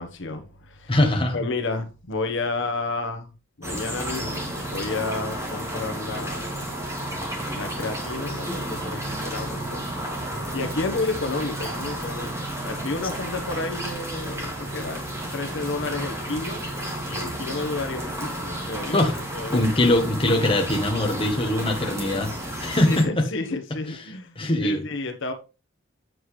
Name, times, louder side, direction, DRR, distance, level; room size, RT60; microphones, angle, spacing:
voice 1, 0.0-1.0 1.3-3.3 3.6-6.5 7.5-9.9 10.5-15.0 15.3-16.6 17.1-19.1 19.3-19.6 22.6-24.3 24.6-25.3, left 3 dB, 65° left, 1.2 m, -31 dB
voice 2, 0.9-1.4 18.9-19.2 19.5-22.3 22.6-23.3 24.4-24.8, left 1 dB, 25° left, 1.3 m, -22 dB
sound 1, 3.6-23.0, right 1 dB, 15° right, 2.3 m, -32 dB
7.9 x 7.8 x 3.2 m
head